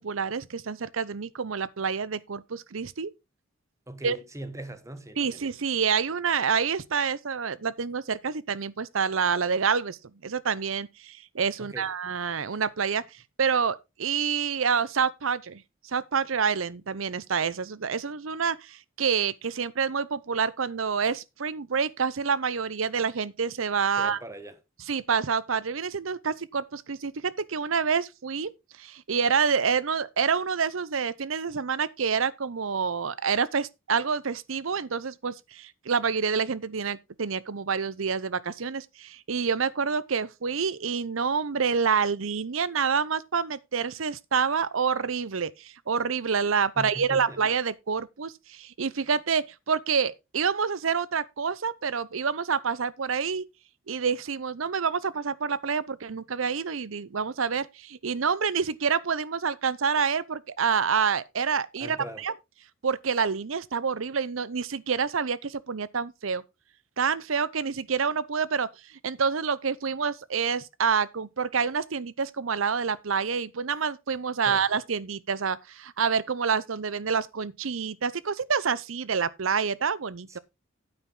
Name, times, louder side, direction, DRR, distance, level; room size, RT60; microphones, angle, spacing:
voice 1, 0.0-3.1 4.0-4.2 5.2-10.0 10.2-24.2 24.9-28.5 28.8-53.4 53.9-62.3 62.8-66.4 67.0-80.4, right 6 dB, 75° right, 0.7 m, -27 dB
voice 2, 3.9-5.4 11.6-11.9 24.0-24.6 46.8-47.4 61.8-62.3 74.5-74.7 80.3-80.4, right 1 dB, 15° right, 1.1 m, -40 dB
9.2 x 8.8 x 3.8 m
head